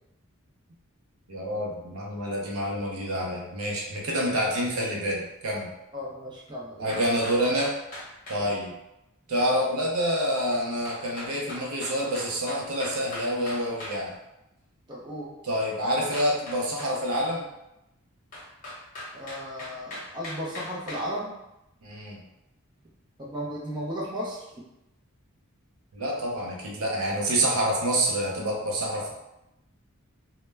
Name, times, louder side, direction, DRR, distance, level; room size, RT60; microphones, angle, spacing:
voice 1, 1.3-5.7 6.8-7.7 8.3-8.7 9.3-14.1 15.4-17.5 21.8-22.2 25.9-29.1, equal, 75° right, -2 dB, 0.6 m, -27 dB
voice 2, 5.9-6.9 8.4-8.5 14.9-15.3 19.1-21.4 23.2-24.5, equal, 20° right, -6 dB, 0.5 m, -35 dB
sound 1, 6.9-8.4 10.8-14.0 16.1-17.3 18.3-21.0, left 1 dB, 40° left, 0.7 m, -39 dB
2.1 x 2.1 x 3.3 m, 0.90 s
head